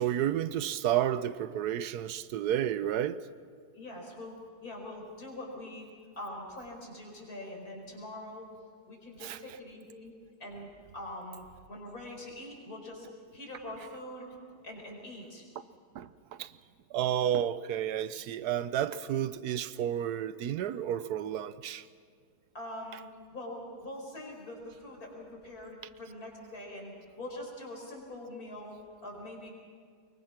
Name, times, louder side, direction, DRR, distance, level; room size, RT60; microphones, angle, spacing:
voice 1, 0.0-3.2 9.2-9.4 15.9-16.5 16.9-21.8, right 10 dB, 85° right, 1.3 m, -31 dB
voice 2, 3.7-4.3 4.6-5.9 6.2-8.5 8.9-10.1 10.4-10.7 10.9-13.1 13.3-14.4 14.6-15.5 22.5-29.5, left 1 dB, 65° left, 5.4 m, -43 dB
24.0 x 22.5 x 6.0 m
omnidirectional pair, 1.7 m